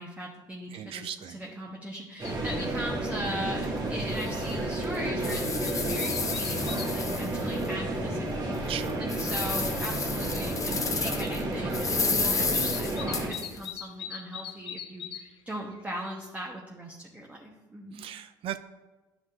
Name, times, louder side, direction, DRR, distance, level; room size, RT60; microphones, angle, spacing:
voice 1, 0.0-18.1, equal, 15° right, -1 dB, 1.1 m, -39 dB
voice 2, 0.7-1.4 2.6-2.9 8.7-9.0 17.9-18.6, right 10 dB, 55° right, 11 dB, 0.4 m, -37 dB
sound 1, 2.2-2.9 3.3-3.4 3.7-3.9 4.3-4.4 5.3-6.9 7.6-7.7 8.9-9.0 9.6-9.7 9.9-10.3 12.6-15.3 15.6-16.2, left 9 dB, 55° left, 0.7 m, -41 dB
sound 2, 2.2-13.3, right 1 dB, 35° right, 2.0 m, -31 dB
sound 3, 3.6-3.7 4.2-4.3 4.8-7.7 8.1-8.2 8.7-11.4 11.7-13.7, left 4 dB, 30° left, 0.9 m, -32 dB
10.5 x 5.2 x 2.6 m, 1.2 s
hypercardioid pair, 65°, 11 cm